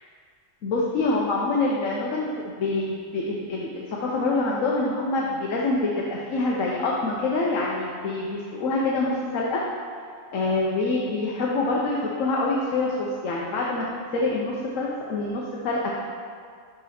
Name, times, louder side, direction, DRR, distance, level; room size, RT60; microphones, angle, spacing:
voice 1, 0.6-9.6 10.3-15.9, left 2 dB, 85° left, -3 dB, 1.2 m, -26 dB
10.5 x 4.1 x 4.2 m, 2.1 s
omnidirectional pair, 1.3 m